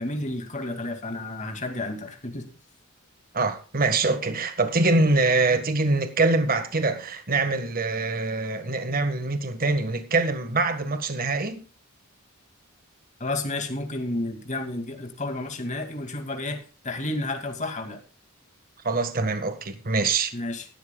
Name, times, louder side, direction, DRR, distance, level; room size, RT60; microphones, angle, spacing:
voice 1, 0.0-2.5 13.2-18.0 20.3-20.7, left 2 dB, 35° left, 2.3 m, -31 dB
voice 2, 3.3-11.6 18.8-20.3, right 3 dB, 45° right, 1.5 m, -24 dB
16.5 x 13.0 x 2.3 m
head